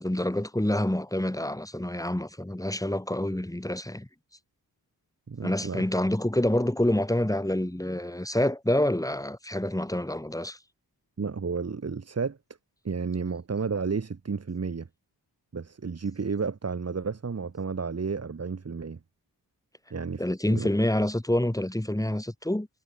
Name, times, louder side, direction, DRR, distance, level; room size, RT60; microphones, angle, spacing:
voice 1, 0.0-4.1 5.4-10.6 20.2-22.7, left 1 dB, 10° left, 4.0 m, -27 dB
voice 2, 5.3-5.8 11.2-12.4 12.9-14.9 15.5-19.0 19.9-20.7, right 5 dB, 40° right, 1.6 m, -32 dB
cardioid pair, 70°, 41 cm